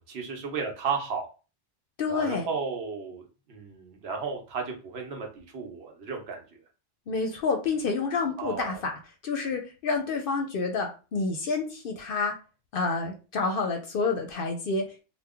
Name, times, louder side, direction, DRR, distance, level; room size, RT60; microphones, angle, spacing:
voice 1, 0.1-1.3 2.1-6.4 8.4-8.8, right 5 dB, 65° right, 2 dB, 1.0 m, -34 dB
voice 2, 2.0-2.5 7.1-8.9 9.2-12.4 12.7-15.0, left 4 dB, 60° left, 4 dB, 0.7 m, -28 dB
3.0 x 2.1 x 3.5 m, 0.33 s
omnidirectional pair, 1.2 m